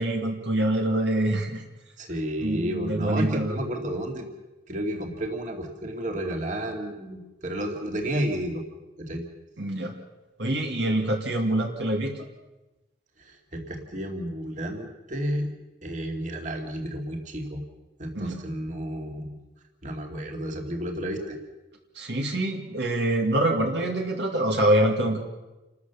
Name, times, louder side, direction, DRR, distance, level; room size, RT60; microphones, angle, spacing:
voice 1, 0.0-1.6 2.4-3.6 9.6-9.9 10.4-12.2 18.1-18.4 22.0-25.2, right 1 dB, 70° right, 2 dB, 2.2 m, -25 dB
voice 2, 2.0-4.3 4.7-8.6 9.0-9.2 13.2-15.5 15.8-17.6 18.0-19.4 19.8-21.4, equal, 40° right, 2 dB, 2.4 m, -31 dB
28.5 x 13.0 x 7.0 m, 1.1 s
head